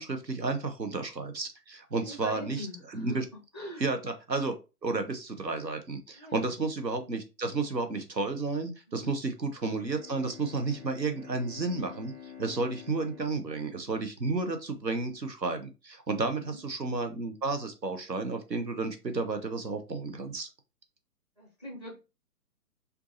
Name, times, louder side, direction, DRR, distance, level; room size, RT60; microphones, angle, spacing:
voice 1, 0.0-3.3 3.8-4.5 4.8-20.5, right 3 dB, 90° right, 7 dB, 1.0 m, -32 dB
voice 2, 2.0-3.2 3.5-3.8 6.2-6.5 8.9-9.1 16.4-16.6 21.4-22.0, equal, 15° right, 0 dB, 0.7 m, -42 dB
Bowed string instrument, 9.7-14.6, left 8 dB, 70° right, 2.1 m, -49 dB
4.5 x 2.7 x 2.6 m, 0.28 s
figure-of-eight pair, 135°, 49 cm